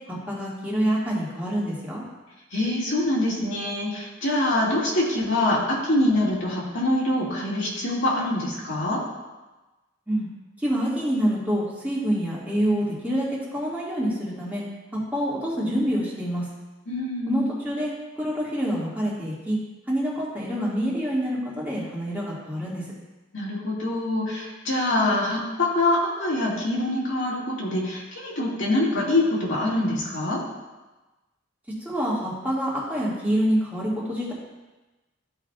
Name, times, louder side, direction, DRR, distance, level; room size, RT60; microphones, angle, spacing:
voice 1, 0.3-2.0 10.1-10.3 10.6-13.3 13.5-14.6 15.1-16.4 17.3-17.9 18.2-19.6 19.9-22.8 31.9-34.3, equal, 10° right, -7 dB, 1.8 m, -26 dB
voice 2, 2.5-9.0 16.9-17.5 23.3-30.4, left 1 dB, 70° left, -6 dB, 2.0 m, -24 dB
13.0 x 4.8 x 2.3 m, 1.1 s
head